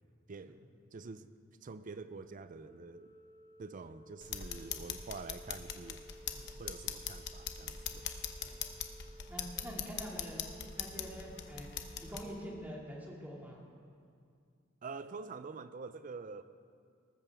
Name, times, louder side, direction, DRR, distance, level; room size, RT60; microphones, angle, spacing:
voice 1, 0.9-1.3 1.6-3.1 3.6-6.0 6.6-8.1 14.8-16.4, right 4 dB, 45° right, 12 dB, 0.5 m, -46 dB
Organ, 2.4-13.5, right 1 dB, 15° left, 2.4 m, -57 dB
sound 1, 4.2-12.2, left 8 dB, 60° left, 0.9 m, -42 dB
voice 2, 9.3-11.7 12.0-13.6, equal, 10° right, -3 dB, 2.3 m, -46 dB
19.0 x 14.0 x 3.5 m, 2.3 s
head